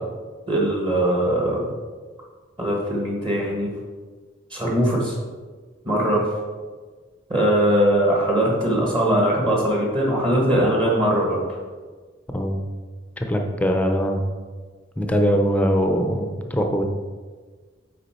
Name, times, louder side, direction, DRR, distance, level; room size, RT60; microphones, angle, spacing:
voice 1, 0.5-1.7 2.6-3.7 4.5-5.1 5.8-6.2 7.3-11.4, right 1 dB, 25° right, -3 dB, 1.4 m, -21 dB
voice 2, 13.2-14.2 15.0-16.8, equal, 10° left, 3 dB, 0.7 m, -22 dB
8.2 x 4.9 x 4.4 m, 1.4 s
head